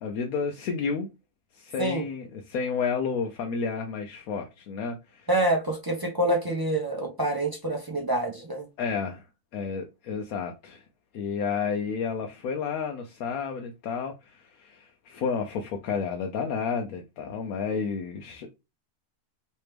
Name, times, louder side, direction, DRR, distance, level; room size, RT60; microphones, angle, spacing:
voice 1, 0.0-1.1 1.5-5.3 8.8-9.2 9.5-10.8 11.1-18.5, left 5 dB, 75° left, 1.0 m, -31 dB
voice 2, 5.3-8.7, right 1 dB, 30° right, 0.4 m, -26 dB
3.3 x 3.0 x 3.2 m
omnidirectional pair, 1.5 m